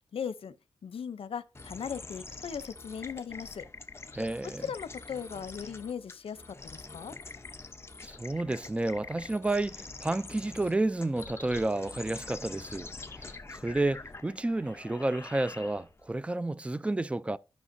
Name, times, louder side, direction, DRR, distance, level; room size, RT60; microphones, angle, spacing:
voice 1, 0.1-0.5 0.8-3.6 4.6-7.2, left 7 dB, 85° left, 0.6 m, -38 dB
sound 1, 1.5-16.1, left 3 dB, 30° left, 0.7 m, -45 dB
voice 2, 4.1-4.7 8.0-12.9 13.2-17.4, right 2 dB, 15° right, 0.3 m, -31 dB
12.5 x 5.7 x 2.6 m
wide cardioid pair, 130°, 9 cm